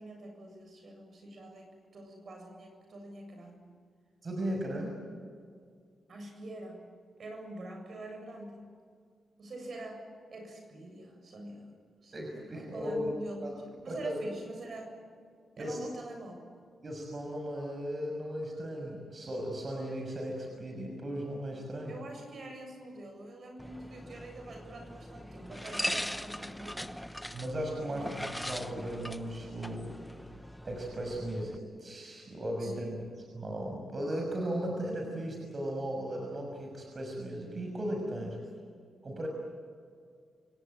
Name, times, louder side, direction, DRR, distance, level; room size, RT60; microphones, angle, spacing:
voice 1, 0.0-3.7 6.1-8.6 9.4-10.1 10.3-11.7 12.0-15.0 15.6-16.4 21.9-26.9 27.9-28.2 32.6-33.0 38.4-38.6, right 1 dB, 60° right, 3 dB, 7.4 m, -45 dB
voice 2, 4.2-5.0 12.1-13.1 13.4-13.5 13.9-14.2 15.6-15.8 16.8-21.9 27.3-29.9 30.2-30.3 30.6-33.0 33.3-38.4 39.0-39.3, equal, 45° right, 1 dB, 6.2 m, -36 dB
sound 1, 23.6-31.6, equal, 5° left, 1.1 m, -40 dB
28.0 x 17.5 x 9.1 m, 2.1 s
cardioid pair, 70°, 0 cm